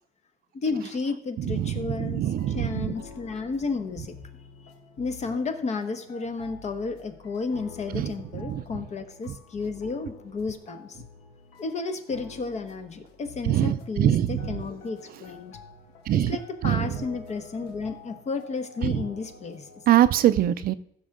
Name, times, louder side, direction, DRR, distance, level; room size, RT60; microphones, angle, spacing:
voice 1, 0.5-4.1 5.0-11.0 11.6-15.6 16.1-19.7, left 4 dB, 40° left, 8 dB, 1.2 m, -32 dB
voice 2, 1.5-2.9 7.9-8.6 13.5-14.5 16.1-16.4 16.6-16.8 18.8-19.0 19.9-20.7, right 12 dB, 60° right, 14 dB, 0.5 m, -23 dB
sound 1, 1.9-19.9, left 5 dB, 85° left, 1.3 m, -48 dB
15.0 x 6.1 x 3.7 m, 0.73 s
cardioid pair, 110°, 17 cm